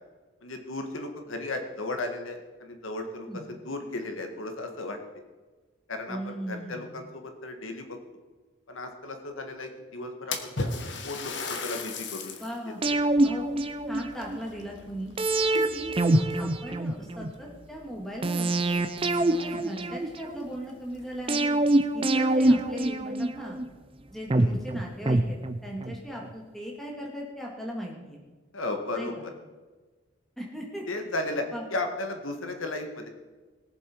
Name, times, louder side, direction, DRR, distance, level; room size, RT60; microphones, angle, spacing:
voice 1, 0.4-5.0 5.9-8.0 8.7-10.7 11.0-12.4 12.6-13.0 15.5-15.6 24.3-24.6 28.5-29.3 30.9-31.4 31.7-33.1, left 2 dB, 85° left, 5 dB, 1.7 m, -35 dB
voice 2, 6.1-6.9 12.4-12.8 13.2-15.1 15.7-18.8 19.3-21.6 21.9-23.6 24.1-28.2 28.9-29.1 30.4-30.8 31.5-31.6, equal, ahead, -2 dB, 2.2 m, -38 dB
Splash splatter, 10.3-12.6 13.1-13.2 14.1-15.2 15.5-16.0 16.8-16.9 17.3-17.4 19.6-19.7 20.0-20.1 20.7-20.8 21.2-21.3 22.0-22.6, left 3 dB, 65° left, 1.2 m, -35 dB
sound 1, 12.8-14.4 15.2-17.3 18.2-20.4 21.3-23.7 24.3-26.0 26.3-26.4, right 2 dB, 25° right, 0.6 m, -25 dB
20.5 x 7.3 x 4.6 m, 1.3 s
head